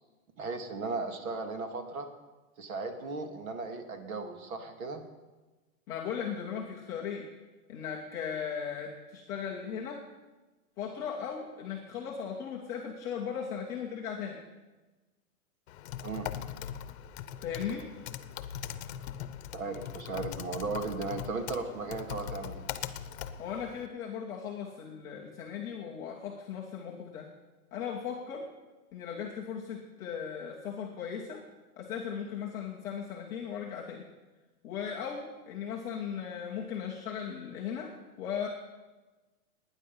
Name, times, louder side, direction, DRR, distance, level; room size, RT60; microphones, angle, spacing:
voice 1, 0.4-2.1 2.6-5.0 16.0-16.3 19.5-22.6, right 3 dB, 75° right, 6 dB, 2.4 m, -36 dB
voice 2, 5.9-7.3 7.7-10.0 10.8-14.4 17.4-17.9 23.4-27.3 27.7-28.5 28.9-31.4 31.8-34.1 34.6-38.5, left 7 dB, 10° left, -4 dB, 0.4 m, -37 dB
Typing, 15.7-23.9, left 10 dB, 50° left, 0.8 m, -41 dB
19.5 x 9.8 x 5.4 m, 1.2 s
supercardioid pair, 160°, 42 cm